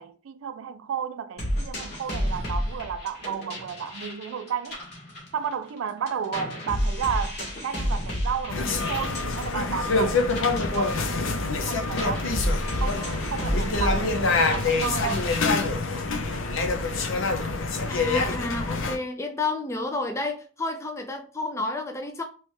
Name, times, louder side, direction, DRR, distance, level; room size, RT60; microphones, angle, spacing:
voice 1, 0.0-4.8 5.3-12.3 12.8-15.3, right 7 dB, 75° right, 0.3 m, -33 dB
sound 1, 1.4-5.8 6.1-15.4, equal, 50° left, 1.4 m, -31 dB
sound 2, 8.5-19.0, left 3 dB, 70° left, 0.6 m, -26 dB
voice 2, 17.9-22.2, left 2 dB, 15° left, 0.4 m, -30 dB
3.2 x 3.0 x 3.1 m
head